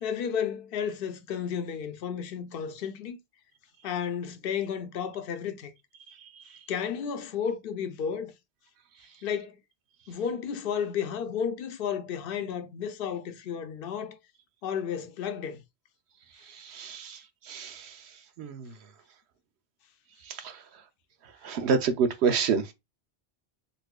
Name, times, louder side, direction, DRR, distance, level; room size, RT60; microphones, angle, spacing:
voice 1, 0.0-3.2 3.8-5.7 6.7-8.3 9.2-9.6 10.1-14.2 14.6-15.6, left 7 dB, 65° left, 0.8 m, -32 dB
voice 2, 16.6-17.2 17.5-18.0 18.4-18.7 20.3-20.6 21.4-22.7, right 5 dB, 90° right, 0.9 m, -28 dB
4.0 x 2.6 x 2.3 m
omnidirectional pair, 1.1 m